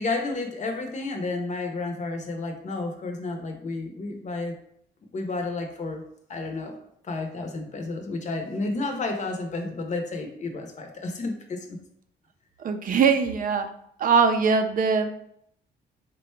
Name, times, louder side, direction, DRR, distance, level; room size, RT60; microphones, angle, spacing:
voice 1, 0.0-4.6 5.1-6.0 6.3-6.8 7.0-11.8, left 3 dB, 40° left, 4 dB, 0.7 m, -31 dB
voice 2, 12.6-13.7 14.0-15.1, right 5 dB, 45° right, 7 dB, 0.5 m, -21 dB
3.8 x 2.2 x 4.3 m, 0.72 s
cardioid pair, 120°, 20 cm